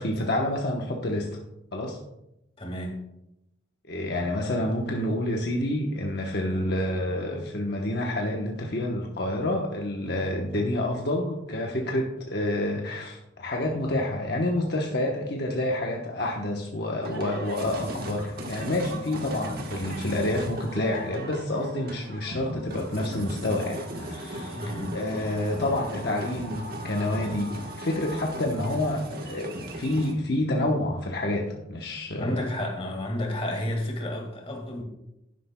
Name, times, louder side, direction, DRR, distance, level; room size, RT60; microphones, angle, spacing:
voice 1, 0.0-1.4 1.7-2.0 3.9-24.6 24.9-32.4, left 1 dB, 55° left, 0 dB, 1.0 m, -28 dB
voice 2, 2.6-3.0 24.5-25.0 32.2-34.8, left 1 dB, 30° left, 2 dB, 1.9 m, -31 dB
sound 1, 17.0-30.1, right 1 dB, 50° right, 1.3 m, -37 dB
12.0 x 10.5 x 2.3 m, 0.85 s
head